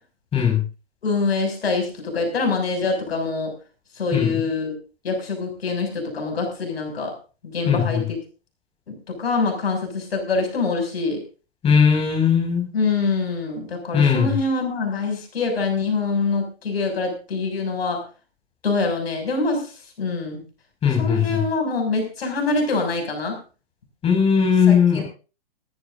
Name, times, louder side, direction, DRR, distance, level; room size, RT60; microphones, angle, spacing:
voice 1, 1.0-3.5 4.0-4.8 5.0-7.1 7.5-8.0 8.9-11.2 12.7-18.0 18.6-19.6 20.0-20.4 21.0-23.3 24.7-25.0, left 3 dB, 65° left, 4 dB, 6.9 m, -24 dB
voice 2, 7.7-8.0 11.6-12.6 13.9-14.3 20.8-21.4 24.0-25.0, left 7 dB, 20° left, 1 dB, 6.0 m, -18 dB
21.0 x 14.5 x 2.7 m, 0.34 s
hypercardioid pair, 125°, 32 cm